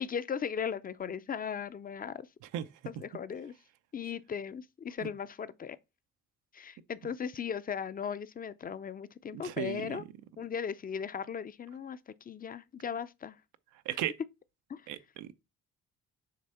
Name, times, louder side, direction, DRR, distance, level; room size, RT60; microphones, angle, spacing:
voice 1, 0.0-2.3 2.8-3.5 3.9-5.8 6.5-10.0 10.4-13.4 13.9-14.3 14.7-14.8, left 7 dB, 30° left, 0.5 m, -37 dB
voice 2, 9.3-10.0 13.9-14.1 14.9-15.3, right 11 dB, 90° right, 0.7 m, -36 dB
6.6 x 3.4 x 5.5 m
cardioid pair, 90°, 30 cm